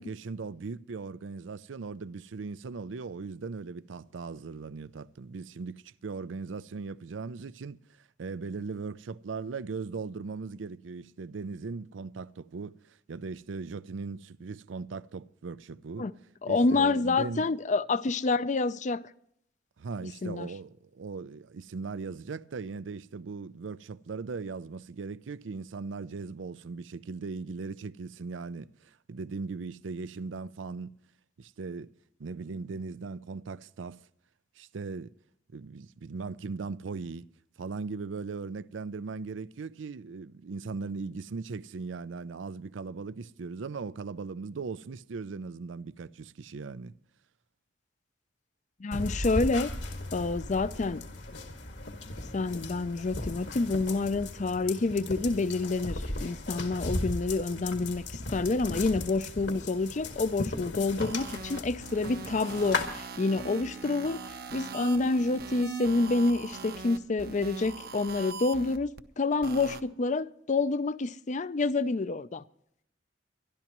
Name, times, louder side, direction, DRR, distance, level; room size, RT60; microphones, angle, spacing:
voice 1, 0.0-7.8 8.2-16.1 16.5-17.5 19.8-31.0 31.4-31.9 32.2-34.0 34.6-35.1 35.5-37.3 37.6-46.9, right 4 dB, 85° right, 0.5 m, -38 dB
voice 2, 16.4-19.1 20.2-20.5 48.8-49.7 50.1-51.0 52.3-64.2 64.5-68.9 69.2-72.4, left 3 dB, 40° left, 0.5 m, -28 dB
sound 1, 48.9-62.9, left 2 dB, 70° left, 1.9 m, -37 dB
sound 2, 61.0-69.0 69.4-69.8, right 4 dB, 55° right, 0.9 m, -41 dB
23.5 x 12.0 x 3.0 m
head